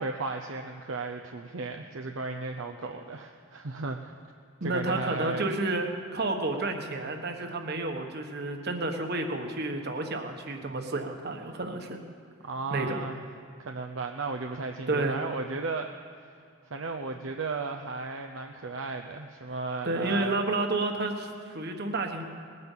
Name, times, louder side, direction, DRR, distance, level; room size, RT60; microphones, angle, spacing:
voice 1, 0.0-4.0 4.6-5.5 12.4-13.2 13.6-15.9 16.7-20.3, right 3 dB, 70° right, 3 dB, 0.7 m, -35 dB
voice 2, 4.6-12.0 12.7-13.0 14.9-15.2 19.8-22.2, right 2 dB, 50° right, 4 dB, 1.5 m, -30 dB
19.5 x 9.6 x 7.5 m, 2.3 s
head